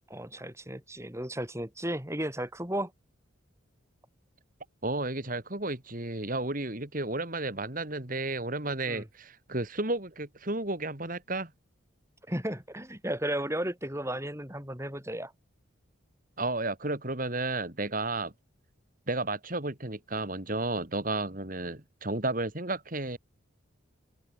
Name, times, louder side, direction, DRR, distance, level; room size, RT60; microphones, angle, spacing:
voice 1, 0.1-2.9 8.9-9.1 12.3-15.3, right 1 dB, 15° right, 7.7 m, -34 dB
voice 2, 4.8-11.5 16.4-18.3 19.1-23.2, right 2 dB, 40° right, 2.7 m, -32 dB
open air
head